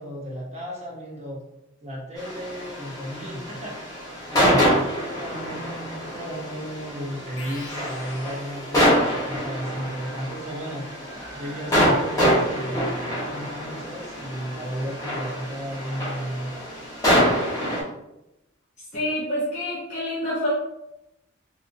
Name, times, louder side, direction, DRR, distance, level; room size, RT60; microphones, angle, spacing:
voice 1, 0.0-1.4 1.8-3.8 4.3-10.9 11.3-16.5, equal, 35° right, -3 dB, 0.9 m, -34 dB
sound 1, 2.2-17.8, equal, 20° left, 1.0 m, -26 dB
sound 2, 7.4-9.3, left 2 dB, 80° left, 0.8 m, -42 dB
sound 3, 11.1-17.8, right 2 dB, 60° right, 1.3 m, -49 dB
voice 2, 18.9-20.5, left 1 dB, 40° left, -9 dB, 0.9 m, -27 dB
3.8 x 2.6 x 2.6 m, 0.91 s
head